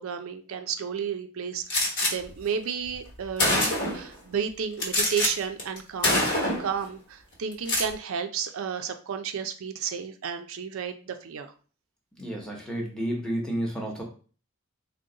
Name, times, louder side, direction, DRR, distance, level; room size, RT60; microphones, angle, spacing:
voice 1, 0.0-6.2 6.6-11.5, right 7 dB, 70° right, 8 dB, 0.4 m, -32 dB
Gunshot gunfire, 1.7-2.1 2.9-3.0 3.4-4.1 4.8-5.3 5.6-5.8 6.0-6.7 7.5-7.9, left 1 dB, 55° left, 1.2 m, -24 dB
voice 2, 12.2-14.0, right 1 dB, 5° left, -1 dB, 0.9 m, -31 dB
3.8 x 2.1 x 3.8 m, 0.39 s
head